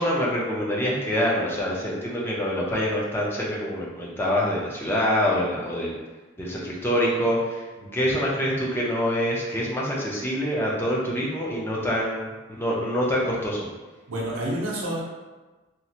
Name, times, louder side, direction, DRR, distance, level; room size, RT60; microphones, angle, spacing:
voice 1, 0.0-6.0 6.4-7.6 7.9-13.6, equal, 10° left, -5 dB, 0.5 m, -25 dB
voice 2, 7.8-8.2 14.1-15.0, right 1 dB, 80° right, -3 dB, 0.6 m, -30 dB
3.0 x 2.4 x 2.8 m, 1.2 s
head